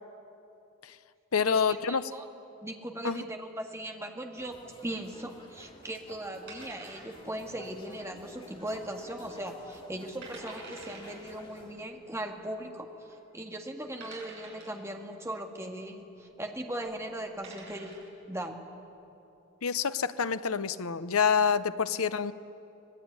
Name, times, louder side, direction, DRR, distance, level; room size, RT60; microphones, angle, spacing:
voice 1, 1.3-2.1 3.0-3.2 19.6-22.3, left 6 dB, 85° left, 13 dB, 0.8 m, -27 dB
voice 2, 2.6-4.6 4.8-12.9 13.3-18.0 18.3-18.6, right 1 dB, 15° right, 3 dB, 1.9 m, -38 dB
sound 1, 4.4-11.8, left 1 dB, 25° left, 2.7 m, -51 dB
sound 2, 6.5-7.4 7.7-7.8 8.4-8.8 9.2-9.3 9.9-10.0 10.2-11.2 12.3-12.4 13.0-13.1 14.0-14.8 16.7-16.8 17.2-18.1, right 3 dB, 55° right, 7.7 m, -48 dB
26.0 x 19.5 x 9.7 m, 2.8 s
head